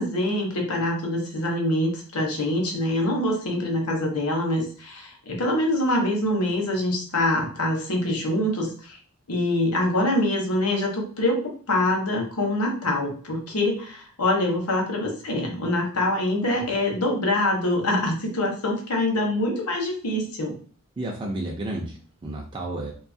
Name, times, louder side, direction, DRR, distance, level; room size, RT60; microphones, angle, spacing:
voice 1, 0.0-9.0 9.3-11.4 11.7-20.5, left 1 dB, 85° left, 1 dB, 0.8 m, -25 dB
voice 2, 21.0-22.9, right 1 dB, 20° right, -1 dB, 0.4 m, -31 dB
2.6 x 2.3 x 2.6 m, 0.42 s
head